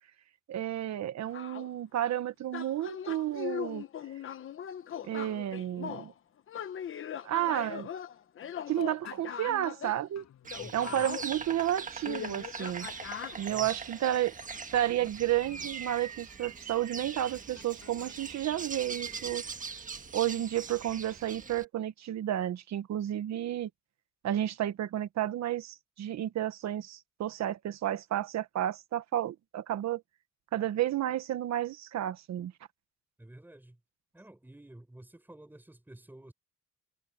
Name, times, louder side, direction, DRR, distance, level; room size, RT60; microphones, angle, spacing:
voice 1, 0.5-3.8 5.0-6.1 7.2-7.9 8.7-10.2 10.7-12.9 13.3-14.3 14.7-19.4 20.1-23.7 24.2-30.0 30.5-32.5, right 12 dB, 60° right, 1.2 m, -31 dB
sound 1, 1.3-1.7 2.5-6.1 6.5-10.0 10.5-13.4, left 9 dB, 40° left, 1.0 m, -40 dB
sound 2, 8.4-9.4 10.1-14.6 14.9-16.6 17.5-18.3 18.8-19.4, left 10 dB, 60° left, 5.0 m, -59 dB
Insect, 10.4-21.6, right 5 dB, 25° right, 1.5 m, -41 dB
voice 2, 10.6-11.1 13.5-13.8 33.2-33.8 34.1-36.3, right 1 dB, 5° right, 6.2 m, -51 dB
cardioid pair, 155°, 32 cm